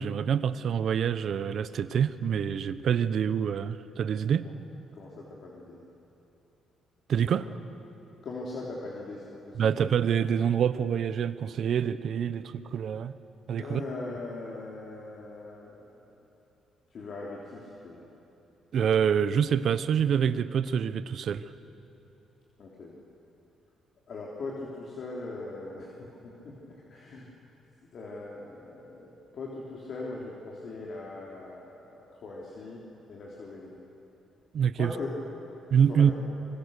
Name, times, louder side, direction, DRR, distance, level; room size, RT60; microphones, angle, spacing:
voice 1, 0.0-4.5 7.1-7.5 9.5-13.1 13.5-13.8 18.7-21.5 34.5-34.9 35.7-36.1, right 8 dB, 65° right, 13 dB, 0.9 m, -26 dB
voice 2, 4.9-5.8 7.4-7.5 8.2-9.8 13.6-16.0 16.9-18.1 22.6-22.9 24.1-27.3 27.9-32.8 33.1-33.7 34.7-35.1 35.9-36.1, left 3 dB, 60° left, -4 dB, 3.7 m, -40 dB
26.0 x 23.5 x 6.8 m, 2.9 s
cardioid pair, 90°, 0 cm